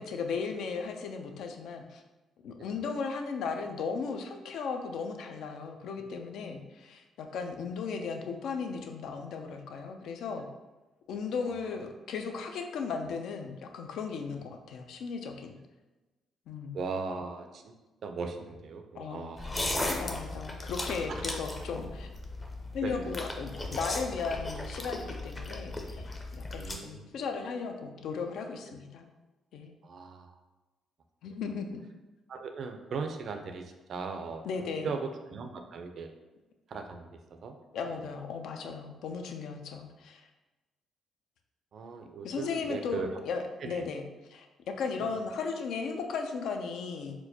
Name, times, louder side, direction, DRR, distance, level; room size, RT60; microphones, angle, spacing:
voice 1, 0.0-2.0 2.4-10.5 11.1-15.6 16.5-16.8 18.9-22.1 22.7-29.1 29.5-29.7 31.2-31.8 34.4-35.0 37.7-40.3 42.2-44.0 44.3-47.2, left 5 dB, 75° left, 5 dB, 0.4 m, -36 dB
voice 2, 16.7-17.7 18.0-19.5 21.1-21.2 22.8-23.1 25.5-25.6 26.6-27.1 28.7-28.8 29.8-30.3 31.2-31.3 32.3-34.4 34.8-36.1 36.7-37.1 37.4-37.6 37.9-38.0 41.7-43.1 43.6-43.9 45.0-45.2, right 5 dB, 60° right, 5 dB, 0.4 m, -38 dB
sound 1, 19.4-26.8, left 2 dB, 25° left, 0.5 m, -36 dB
4.4 x 2.1 x 2.7 m, 1.1 s
cardioid pair, 90°, 0 cm